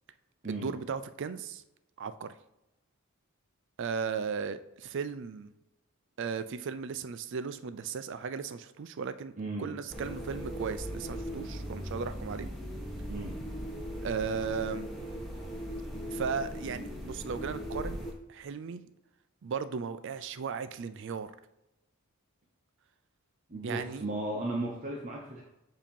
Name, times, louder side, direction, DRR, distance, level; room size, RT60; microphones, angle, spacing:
voice 1, 0.5-1.6 2.0-2.3 3.8-5.5 6.2-9.3 9.6-12.5 14.0-14.9 16.1-18.0 18.3-18.9 19.4-21.3 23.6-24.1, right 6 dB, 55° right, 12 dB, 0.4 m, -36 dB
voice 2, 9.4-9.7 13.1-13.4 23.5-25.4, right 2 dB, 35° right, -2 dB, 0.8 m, -35 dB
sound 1, 9.9-18.1, equal, ahead, 1.2 m, -39 dB
7.4 x 2.8 x 5.3 m, 0.94 s
head